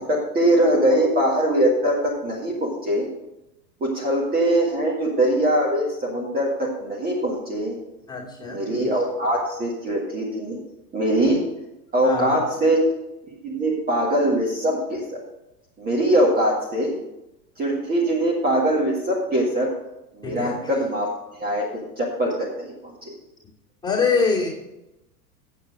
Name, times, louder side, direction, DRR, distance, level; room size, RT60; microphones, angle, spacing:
voice 1, 0.1-3.1 3.8-7.8 8.4-10.6 10.9-11.4 11.9-12.8 13.4-15.2 15.8-17.0 17.6-19.7 20.1-21.1 21.4-21.7 22.0-23.1, right 1 dB, 20° right, -3 dB, 1.8 m, -22 dB
voice 2, 8.1-8.6 12.0-12.4 20.2-20.6 23.8-24.5, left 4 dB, 10° left, -5 dB, 2.7 m, -23 dB
8.4 x 7.1 x 6.3 m, 0.91 s
figure-of-eight pair, 90°, 48 cm